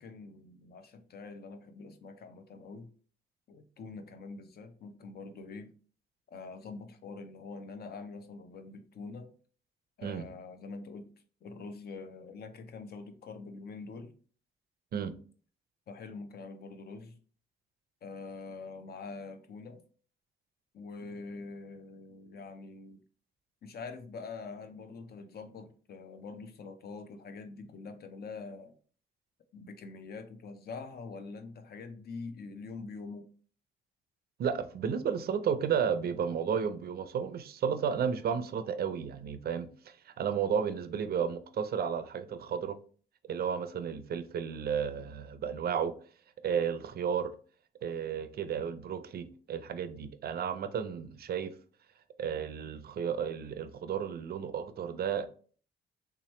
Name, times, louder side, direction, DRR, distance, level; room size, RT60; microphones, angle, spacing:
voice 1, 0.0-2.9 3.5-5.7 6.3-9.3 10.0-11.1 11.4-14.1 15.9-17.2 18.0-19.8 20.7-23.0 23.6-28.7 29.5-33.3, left 4 dB, 50° left, 0.7 m, -45 dB
voice 2, 34.4-42.8 43.3-45.9 46.4-47.3 47.8-51.5 52.2-55.3, right 7 dB, 50° right, 0.5 m, -33 dB
3.5 x 2.9 x 3.1 m
cardioid pair, 90°, 20 cm